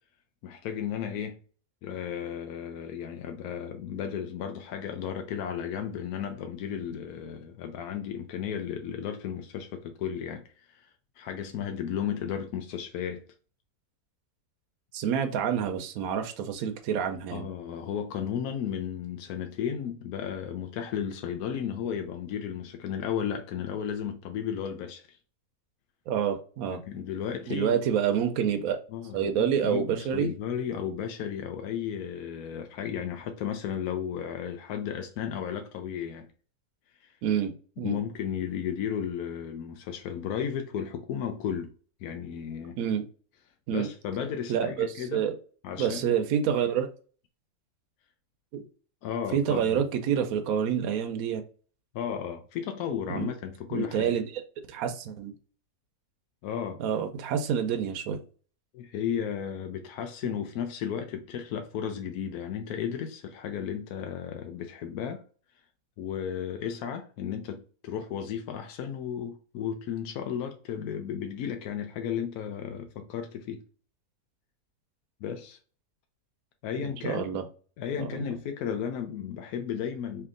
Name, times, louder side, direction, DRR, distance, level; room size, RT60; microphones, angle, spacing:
voice 1, 0.4-1.4 1.8-10.9 11.2-13.2 17.3-25.2 26.6-27.8 28.9-36.3 37.0-37.1 37.8-41.7 42.0-42.8 43.7-45.2 45.6-46.2 49.0-49.8 51.9-54.2 56.4-56.8 58.7-65.2 66.0-73.6 75.2-75.6 76.6-77.4 77.8-80.3, left 8 dB, 75° left, 1.1 m, -34 dB
voice 2, 14.9-17.5 26.1-26.8 27.5-28.8 29.1-30.3 37.2-37.5 37.8-38.0 42.8-43.0 43.7-43.9 44.5-45.3 45.8-46.9 48.5-48.6 49.3-51.4 53.1-53.3 53.7-54.2 54.7-55.3 56.8-58.2 77.0-77.4 78.0-78.1, right 8 dB, 70° right, 1.0 m, -27 dB
3.4 x 2.8 x 3.7 m
omnidirectional pair, 1.7 m